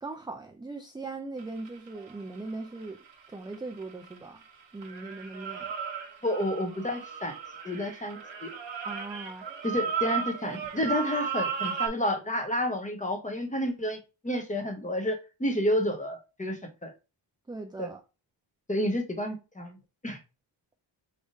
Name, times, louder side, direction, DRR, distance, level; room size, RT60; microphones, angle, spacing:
voice 1, 0.0-3.0 3.3-4.4 4.7-5.7 8.8-9.4 17.5-18.0, right 3 dB, 10° right, 0.4 m, -39 dB
sound 1, 1.4-4.5 4.8-11.9, right 6 dB, 90° right, 1.0 m, -35 dB
voice 2, 6.2-7.3 7.6-8.5 9.6-14.0 14.2-16.9 17.8-17.9 18.7-19.8 20.0-20.2, equal, 15° left, 0.9 m, -30 dB
4.9 x 3.5 x 2.7 m
wide cardioid pair, 130°, 44 cm